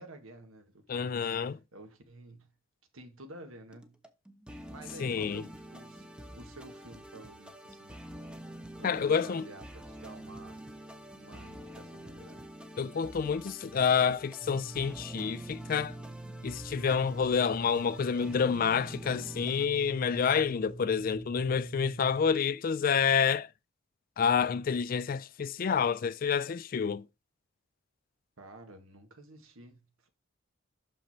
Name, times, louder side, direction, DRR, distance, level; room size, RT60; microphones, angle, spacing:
voice 1, 0.0-2.5 2.9-4.0 4.7-8.0 8.8-10.8 11.2-12.5 28.4-30.1, right 2 dB, 90° right, 1.7 m, -51 dB
voice 2, 0.9-1.6 5.0-5.4 8.8-9.5 12.8-16.0 16.4-23.5 24.2-27.0, left 6 dB, 45° left, 0.3 m, -28 dB
sound 1, 3.7-19.7, equal, 5° right, 0.7 m, -47 dB
sound 2, 14.4-22.3, right 2 dB, 35° right, 1.0 m, -45 dB
6.3 x 5.5 x 4.3 m
head